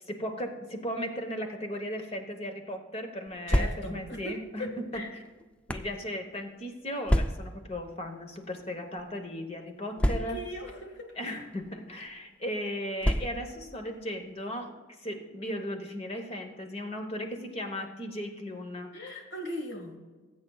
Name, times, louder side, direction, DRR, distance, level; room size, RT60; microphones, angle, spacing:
voice 1, 0.1-4.7 4.9-5.2 5.7-10.4 11.2-14.7 15.0-18.9, equal, 30° left, 4 dB, 1.1 m, -36 dB
sound 1, 3.3-4.1 4.9-6.0 7.1-7.7 8.5-8.7 9.0-9.1 10.0-10.6 11.5-11.7 13.0-13.6, equal, 5° left, 0.3 m, -28 dB
voice 2, 3.5-5.1 10.0-11.4 18.9-20.0, left 1 dB, 55° left, 2 dB, 1.9 m, -39 dB
19.5 x 8.2 x 2.4 m, 1.3 s
head